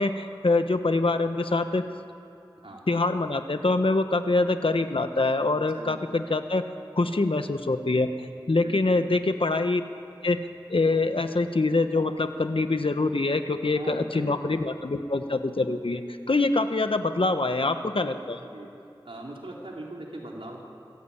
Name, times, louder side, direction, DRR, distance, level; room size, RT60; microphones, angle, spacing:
voice 1, 0.0-1.8 2.9-6.6 7.0-8.1 8.5-9.8 10.2-10.4 10.7-16.0 16.3-18.4, left 3 dB, 80° left, 8 dB, 1.2 m, -24 dB
voice 2, 5.7-6.0 8.6-8.9 13.7-14.4 18.5-18.7 19.0-20.6, right 1 dB, 85° right, -2 dB, 3.9 m, -40 dB
25.5 x 15.5 x 8.8 m, 2.7 s
wide cardioid pair, 45°, 9 cm